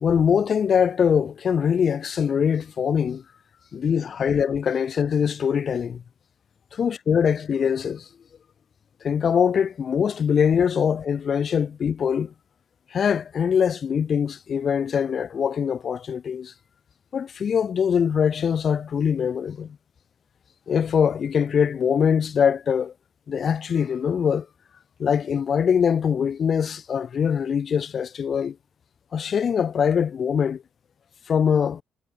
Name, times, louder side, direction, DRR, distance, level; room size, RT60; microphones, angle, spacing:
voice 1, 0.0-3.2 3.7-6.0 6.7-8.0 9.0-12.3 12.9-16.5 17.1-19.8 20.7-22.9 23.3-24.5 25.0-28.6 29.1-30.6 31.3-31.8, left 7 dB, 50° left, 0.5 m, -23 dB
cardioid pair, 90°, 0 cm